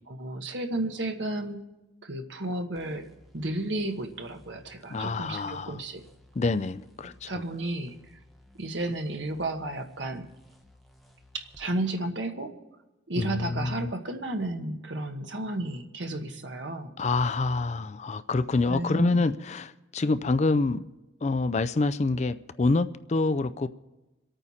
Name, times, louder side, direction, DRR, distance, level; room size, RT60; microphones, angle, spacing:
voice 1, 0.1-1.6 2.0-3.1 3.3-6.0 7.3-7.9 8.6-10.3 11.3-12.5 13.1-16.9 18.7-19.3, right 1 dB, 75° right, 5 dB, 1.3 m, -33 dB
sound 1, 2.7-11.7, left 1 dB, ahead, 1.2 m, -58 dB
voice 2, 4.9-5.8 6.4-7.3 13.2-13.9 17.0-20.9 21.2-23.7, left 3 dB, 35° left, 13 dB, 0.4 m, -26 dB
26.5 x 9.0 x 4.2 m, 1.0 s
head